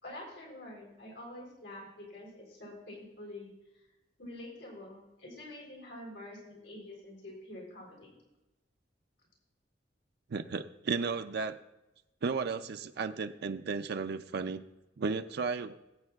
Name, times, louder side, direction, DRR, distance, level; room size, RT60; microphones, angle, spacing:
voice 1, 0.0-3.5 4.2-8.1, left 1 dB, 90° left, -2 dB, 3.8 m, -47 dB
voice 2, 10.3-11.6 12.2-14.6 15.0-15.8, right 4 dB, 60° right, 8 dB, 0.5 m, -34 dB
20.0 x 8.6 x 2.4 m, 1.0 s
head